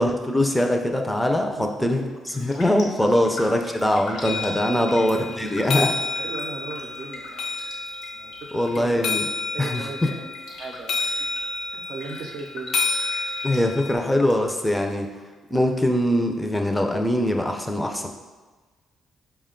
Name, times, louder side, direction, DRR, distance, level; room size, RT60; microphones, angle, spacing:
voice 1, 0.0-6.0 8.5-9.2 9.6-10.1 13.4-15.1 15.5-18.1, left 1 dB, 5° left, 3 dB, 0.5 m, -22 dB
voice 2, 1.4-2.2 3.2-3.3 4.7-5.0 6.2-7.5 8.1-9.0 9.5-11.3 11.7-12.7, right 4 dB, 70° right, 3 dB, 0.5 m, -38 dB
Raindrop, 1.9-2.0 2.3-14.3 14.6-15.6 16.0-16.1, left 2 dB, 80° left, 1.0 m, -42 dB
sound 1, 4.2-13.9, left 3 dB, 65° left, 0.5 m, -30 dB
4.9 x 2.2 x 3.7 m, 1.3 s
cardioid pair, 90°, 0 cm